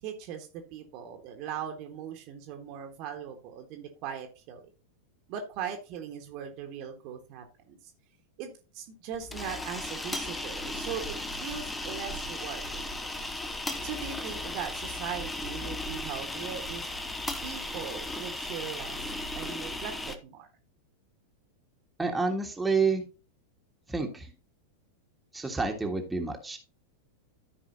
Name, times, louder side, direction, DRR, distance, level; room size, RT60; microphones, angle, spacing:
voice 1, 0.0-4.6 5.3-7.8 8.4-13.3 13.8-16.8 17.4-19.0 19.3-20.5, right 8 dB, 40° right, 4 dB, 1.4 m, -39 dB
sound 1, 9.1-20.2, left 2 dB, 10° left, 0.9 m, -36 dB
voice 2, 22.0-23.0 23.9-24.3 25.3-26.6, right 4 dB, 10° right, 2 dB, 1.5 m, -29 dB
14.0 x 4.8 x 2.7 m, 0.33 s
figure-of-eight pair, 90°, 0 cm